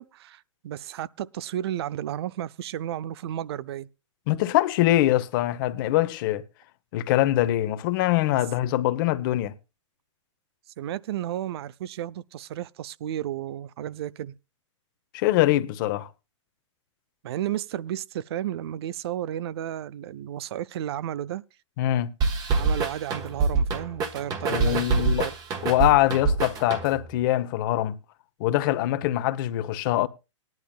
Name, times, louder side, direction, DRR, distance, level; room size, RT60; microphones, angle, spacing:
voice 1, 0.0-3.9 10.8-14.3 17.2-21.4 22.5-24.9 25.2-25.3, right 11 dB, 55° right, 0.6 m, -33 dB
voice 2, 4.3-6.4 6.9-9.5 15.1-16.1 21.8-22.1 24.4-25.3 25.6-27.9 28.4-30.1, left 14 dB, 40° left, 1.0 m, -23 dB
sound 1, 22.2-27.2, right 4 dB, 25° right, 1.4 m, -26 dB
18.5 x 10.5 x 2.4 m
hypercardioid pair, 145°, 16 cm